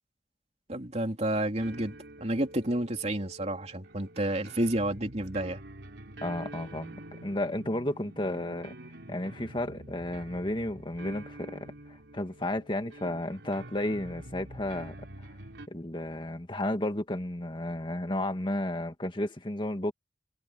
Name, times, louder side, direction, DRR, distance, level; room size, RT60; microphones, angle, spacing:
voice 1, 0.7-5.6, right 1 dB, 40° right, 3.0 m, -30 dB
sound 1, 1.6-15.7, right 1 dB, 85° right, 3.7 m, -47 dB
voice 2, 6.2-8.7 9.1-14.9 15.7-19.9, left 1 dB, 30° left, 2.1 m, -33 dB
head